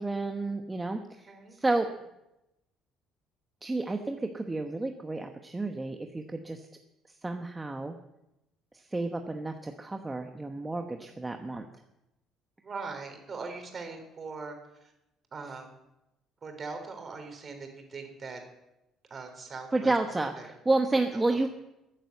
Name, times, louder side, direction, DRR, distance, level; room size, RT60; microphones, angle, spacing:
voice 1, 0.0-1.9 3.6-6.7 7.1-8.0 8.9-11.7 19.7-21.5, right 2 dB, 15° right, 5 dB, 1.1 m, -31 dB
voice 2, 1.3-1.6 11.0-11.1 12.6-14.9 15.3-15.8 16.4-18.4 19.1-19.9 20.4-20.5 21.1-21.4, right 4 dB, 35° right, 5 dB, 3.8 m, -41 dB
14.0 x 8.9 x 7.9 m, 0.91 s
cardioid pair, 90°, 0 cm